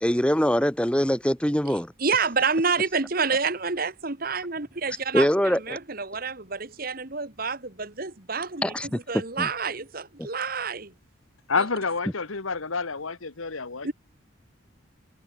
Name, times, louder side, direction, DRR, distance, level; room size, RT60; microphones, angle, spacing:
voice 1, 0.0-1.9 5.1-5.8 8.6-8.9 9.4-9.5, equal, 5° left, 1.2 m, -23 dB
voice 2, 1.7-10.9 13.8-13.9, right 4 dB, 45° right, 1.6 m, -28 dB
voice 3, 11.5-13.9, left 4 dB, 80° left, 1.5 m, -28 dB
head